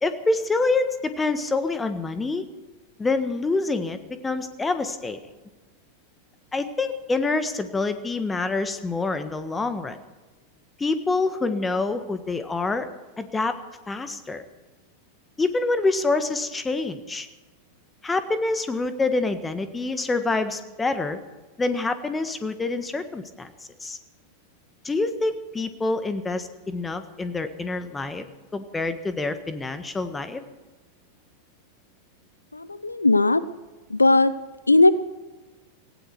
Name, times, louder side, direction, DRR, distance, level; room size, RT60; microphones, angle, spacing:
voice 1, 0.0-2.4 3.0-4.0 4.2-5.2 6.5-10.0 10.8-12.9 13.2-13.5 13.9-14.4 15.4-17.3 18.0-21.2 21.6-23.5 23.8-24.0 24.8-28.3 28.5-30.4, left 3 dB, 15° left, 10 dB, 1.5 m, -26 dB
voice 2, 32.5-33.4 33.9-34.3 34.7-34.9, left 2 dB, 80° left, 17 dB, 0.5 m, -18 dB
18.0 x 16.5 x 4.6 m, 1.2 s
figure-of-eight pair, 90°, 0 cm